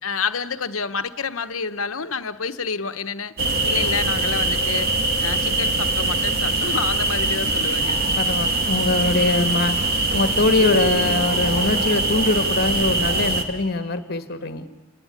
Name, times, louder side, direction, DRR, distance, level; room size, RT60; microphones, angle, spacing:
voice 1, 0.0-3.3 3.6-4.9 5.2-8.0 9.1-9.6, left 5 dB, 80° left, 10 dB, 1.1 m, -29 dB
sound 1, 3.4-13.4, right 2 dB, 50° right, 2.3 m, -22 dB
voice 2, 8.2-9.8 10.1-14.7, left 2 dB, 50° left, 8 dB, 1.6 m, -22 dB
29.5 x 19.5 x 9.8 m, 1.2 s
head